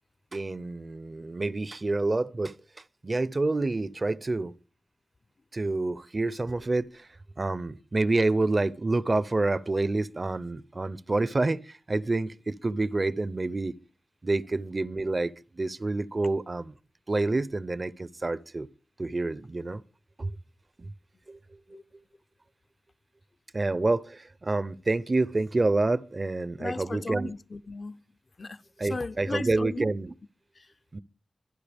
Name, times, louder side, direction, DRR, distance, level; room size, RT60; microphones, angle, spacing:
voice 1, 0.3-2.5 3.0-4.5 5.5-7.1 7.4-13.8 14.2-16.7 17.1-18.7 19.0-19.8 20.2-20.3 20.8-20.9 21.3-21.4 23.5-27.3 28.8-30.1 30.9-31.0, right 2 dB, 35° right, 0.6 m, -28 dB
voice 2, 26.6-28.0 28.4-29.9 30.6-30.7, left 3 dB, 45° left, 0.6 m, -37 dB
24.5 x 11.0 x 3.5 m
wide cardioid pair, 90°, 0 cm